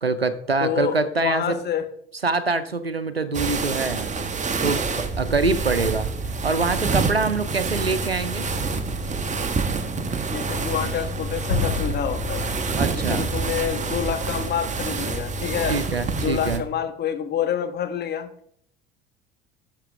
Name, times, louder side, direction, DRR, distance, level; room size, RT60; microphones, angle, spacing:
voice 1, 0.0-1.6 2.2-4.8 5.2-6.1 6.4-8.5 12.8-13.3 15.7-16.7, right 3 dB, 90° right, 14 dB, 0.7 m, -25 dB
voice 2, 0.6-1.8 10.3-12.6 13.0-15.8 16.2-18.3, left 9 dB, 35° left, 7 dB, 1.4 m, -27 dB
sound 1, 3.3-16.6, right 4 dB, 25° right, 1.2 m, -27 dB
sound 2, 11.5-13.9, left 5 dB, 80° left, 2.2 m, -30 dB
13.0 x 6.9 x 3.4 m, 0.68 s
figure-of-eight pair, 60°, 30 cm